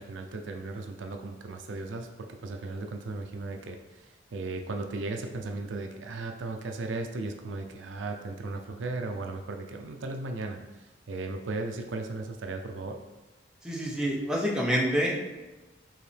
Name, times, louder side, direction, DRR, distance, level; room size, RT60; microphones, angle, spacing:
voice 1, 0.0-13.0, right 3 dB, 80° right, 4 dB, 0.5 m, -36 dB
voice 2, 13.6-15.3, equal, 5° right, -4 dB, 0.6 m, -27 dB
4.6 x 3.1 x 3.3 m, 1.1 s
head